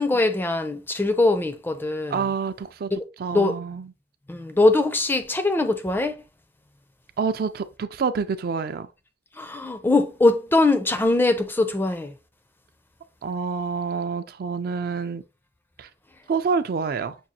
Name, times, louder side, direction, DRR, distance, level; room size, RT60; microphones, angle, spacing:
voice 1, 0.0-2.3 3.3-3.6 4.3-6.1 9.4-12.1, left 2 dB, 10° left, 0.4 m, -22 dB
voice 2, 2.1-2.9 3.2-3.9 7.2-8.9 13.2-15.2 15.8-15.9 16.3-17.2, right 5 dB, 55° right, 0.4 m, -27 dB
6.1 x 2.3 x 2.7 m
head